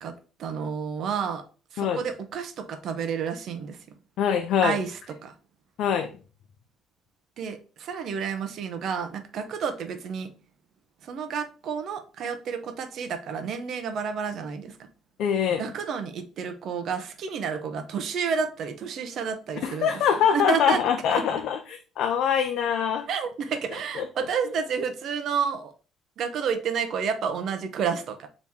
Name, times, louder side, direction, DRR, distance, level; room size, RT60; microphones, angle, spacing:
voice 1, 0.4-1.4 1.7-3.8 4.6-4.9 5.2-5.3 7.4-10.3 11.0-14.7 15.6-20.0 20.3-20.8 21.1-21.2 23.1-25.7 26.2-28.3, right 6 dB, 50° right, 8 dB, 0.6 m, -30 dB
voice 2, 4.2-4.8 5.8-6.1 15.2-15.6 19.6-23.1 23.9-24.1, left 8 dB, 65° left, 6 dB, 0.5 m, -24 dB
3.6 x 3.0 x 4.1 m, 0.37 s
cardioid pair, 150°, 0 cm